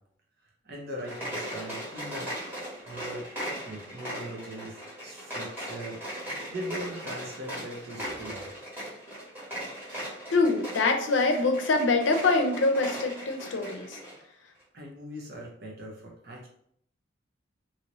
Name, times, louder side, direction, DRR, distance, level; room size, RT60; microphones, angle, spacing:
voice 1, 0.6-2.3 2.8-3.3 3.6-4.8 5.0-6.0 6.5-8.5 14.7-16.5, equal, 55° right, -1 dB, 0.8 m, -40 dB
corn popper with accents, 0.9-14.2, equal, 10° right, 1.3 m, -38 dB
voice 2, 10.3-14.0, left 3 dB, 80° left, 4 dB, 0.5 m, -24 dB
2.9 x 2.7 x 3.0 m, 0.67 s
head